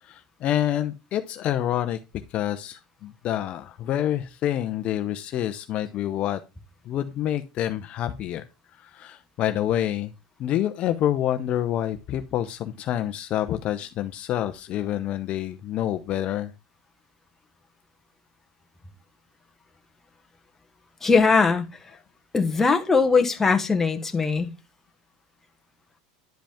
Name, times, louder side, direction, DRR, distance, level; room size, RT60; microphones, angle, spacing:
voice 1, 0.0-2.0 2.3-6.4 6.9-8.4 8.8-10.1 10.4-16.5, left 11 dB, 40° left, 0.6 m, -27 dB
voice 2, 21.0-21.6 22.3-24.5, left 4 dB, 10° left, 1.0 m, -20 dB
10.5 x 5.1 x 3.5 m
supercardioid pair, 145°, 3 cm